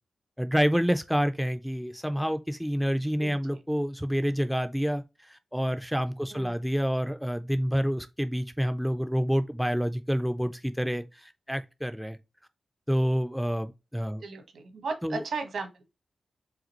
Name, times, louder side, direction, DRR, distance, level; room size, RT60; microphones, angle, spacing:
voice 1, 0.4-12.2 12.9-14.2 15.0-15.2, equal, ahead, 0.3 m, -28 dB
voice 2, 3.2-3.6 6.3-6.5 14.2-15.9, right 4 dB, 70° right, 1.3 m, -36 dB
4.9 x 3.3 x 2.9 m
wide cardioid pair, 170°, 0 cm